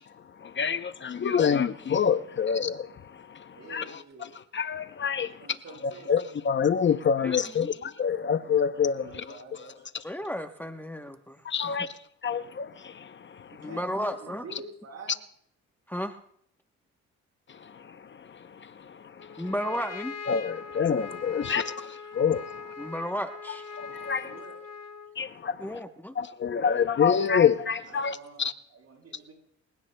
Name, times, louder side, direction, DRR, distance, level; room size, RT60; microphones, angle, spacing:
voice 1, 0.4-3.4 3.7-4.3 4.5-5.3 6.1-9.2 11.5-11.9 12.2-13.8 17.6-18.0 18.3-19.5 20.3-21.6 22.1-22.7 23.8-24.4 25.2-25.8 26.2-28.5, left 7 dB, 40° left, 0.7 m, -27 dB
voice 2, 3.5-4.3 5.2-6.2 8.9-9.7 13.5-15.2 21.3-21.7 24.2-24.6 27.9-28.4 28.7-29.3, right 3 dB, 60° right, 7.2 m, -47 dB
voice 3, 7.2-7.7 10.0-11.4 11.6-11.8 13.6-14.4 15.9-16.2 19.4-20.1 22.8-23.6 25.6-26.2, equal, 5° left, 0.9 m, -33 dB
Trumpet, 19.2-25.2, left 5 dB, 55° left, 1.5 m, -41 dB
28.0 x 16.5 x 2.2 m
cardioid pair, 90°, 30 cm